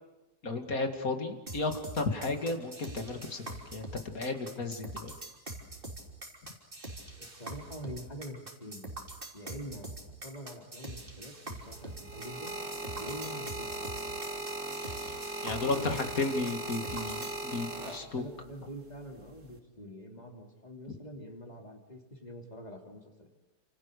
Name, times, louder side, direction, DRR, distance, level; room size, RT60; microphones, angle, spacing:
voice 1, 0.4-3.9 4.1-5.1 15.4-18.2, left 3 dB, 60° left, 6 dB, 2.7 m, -33 dB
sound 1, 1.5-17.4, right 1 dB, 30° right, 3.8 m, -44 dB
voice 2, 7.2-8.9 9.3-10.0 10.2-12.6 12.9-13.7 15.5-16.3 17.5-23.3, equal, 25° left, 2 dB, 3.5 m, -45 dB
sound 2, 11.6-18.4 19.3-19.6, right 2 dB, 50° right, 2.7 m, -39 dB
29.5 x 27.0 x 6.8 m, 1.1 s
omnidirectional pair, 1.7 m